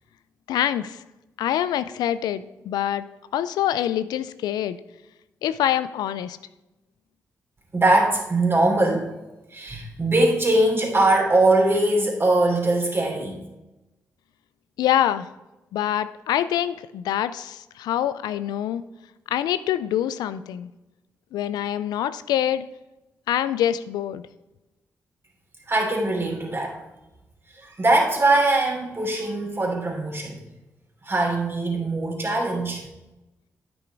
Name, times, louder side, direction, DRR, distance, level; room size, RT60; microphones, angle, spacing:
voice 1, 0.5-1.0 1.4-3.1 3.3-4.8 5.4-6.4 14.8-15.3 15.7-18.8 19.3-20.7 21.3-22.6 23.3-24.2, left 11 dB, 80° left, 14 dB, 0.3 m, -25 dB
voice 2, 7.7-9.1 9.5-13.4 25.7-26.8 27.6-30.4 31.0-32.8, right 2 dB, 35° right, -1 dB, 3.1 m, -21 dB
9.4 x 6.2 x 4.6 m, 1.0 s
hypercardioid pair, 40°, 7 cm